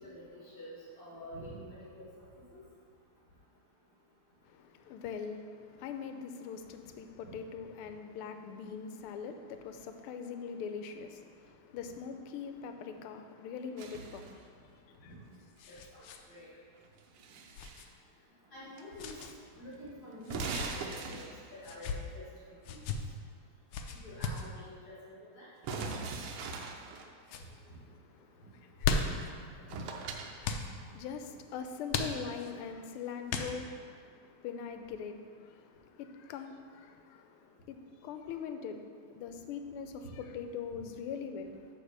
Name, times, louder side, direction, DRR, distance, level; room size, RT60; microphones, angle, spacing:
voice 1, 0.0-2.1 2.5-2.6 15.0-15.2 15.7-16.5 18.5-19.1 19.6-22.2 22.7-22.8 24.0-25.5 29.1-29.2 29.7-29.8, equal, 50° left, -8 dB, 2.1 m, -48 dB
voice 2, 4.4-15.1 27.4-29.1 29.5-29.7 30.3-41.7, left 6 dB, 90° left, 7 dB, 1.5 m, -43 dB
sound 1, 13.8-14.4 16.8-17.9 18.8-19.3 19.5-19.6 20.2-21.6 25.6-27.1 29.2-29.3 29.7-30.3, right 4 dB, 85° right, 1.6 m, -40 dB
sound 2, 14.9-16.2 16.5-16.6 17.5-17.9 19.0-19.3 20.3-20.7 21.6-22.0 22.6-23.0 23.7-24.5 25.7-26.0 26.6-27.0 27.2-27.5 28.5-29.3 30.4-30.7 31.9-32.5 33.3-33.8, left 5 dB, 75° left, 1.3 m, -36 dB
8.7 x 3.7 x 6.5 m, 2.1 s
omnidirectional pair, 2.4 m